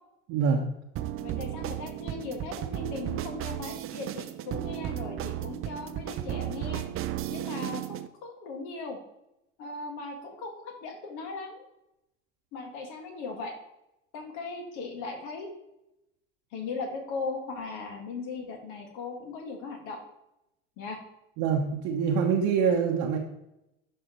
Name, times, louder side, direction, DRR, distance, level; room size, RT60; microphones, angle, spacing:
voice 1, 0.3-0.6 1.3-1.4 21.4-23.2, right 6 dB, 55° right, 0 dB, 1.0 m, -25 dB
sound 1, 1.0-8.1, right 12 dB, 40° right, 0.5 m, -34 dB
voice 2, 1.2-6.9 7.3-9.0 9.6-11.6 12.5-13.6 14.1-15.5 16.5-20.0 20.8-21.0, left 4 dB, 60° left, 3 dB, 1.9 m, -38 dB
11.0 x 4.4 x 3.0 m, 0.87 s
figure-of-eight pair, 65°, 34 cm